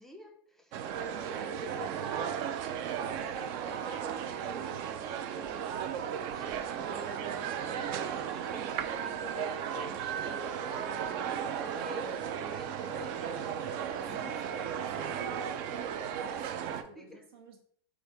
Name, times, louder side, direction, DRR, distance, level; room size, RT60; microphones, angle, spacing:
voice 1, 0.0-14.7 17.0-17.2, left 2 dB, 5° left, 3 dB, 0.5 m, -50 dB
sound 1, 0.7-16.8, right 8 dB, 50° right, 0.4 m, -35 dB
voice 2, 13.6-17.6, right 4 dB, 75° right, 4 dB, 0.9 m, -48 dB
3.2 x 2.4 x 4.3 m, 0.63 s
hypercardioid pair, 100°, 13 cm